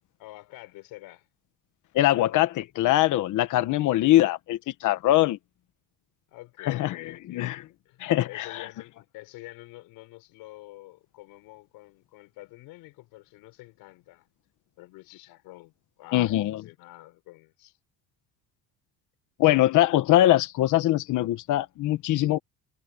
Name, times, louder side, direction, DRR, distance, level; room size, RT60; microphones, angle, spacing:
voice 1, 0.2-1.3 6.3-14.3 14.8-15.7 16.0-17.8, left 19 dB, 90° left, 5.6 m, -47 dB
voice 2, 1.9-5.4 6.6-7.7 8.0-8.7 16.1-16.6 19.4-22.4, left 15 dB, 60° left, 1.3 m, -22 dB
cardioid pair, 155°, 35 cm